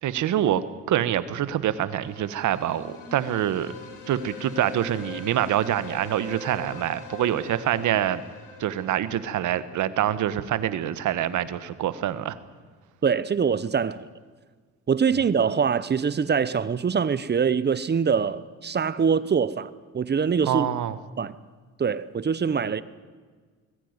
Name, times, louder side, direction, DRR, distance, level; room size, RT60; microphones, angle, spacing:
voice 1, 0.0-3.7 4.1-8.2 8.6-12.4 20.4-21.0, right 11 dB, 75° right, 1.3 m, -25 dB
sound 1, 1.9-10.7, left 3 dB, 85° left, 3.2 m, -43 dB
voice 2, 13.0-14.1 14.9-20.7 21.2-21.3 21.8-22.8, right 6 dB, 35° right, 0.9 m, -24 dB
21.5 x 15.0 x 9.7 m
cardioid pair, 90°, 30 cm